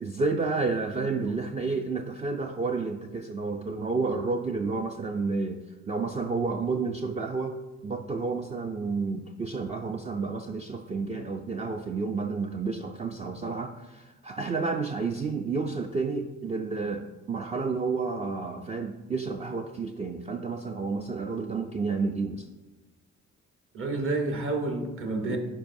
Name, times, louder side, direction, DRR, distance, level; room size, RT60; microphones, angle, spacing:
voice 1, 0.0-7.6 7.8-22.5 25.3-25.4, right 4 dB, 25° right, 4 dB, 0.4 m, -30 dB
voice 2, 23.7-25.4, right 2 dB, 45° right, 4 dB, 1.2 m, -29 dB
10.0 x 4.6 x 2.6 m, 1.1 s
cardioid pair, 90°, 30 cm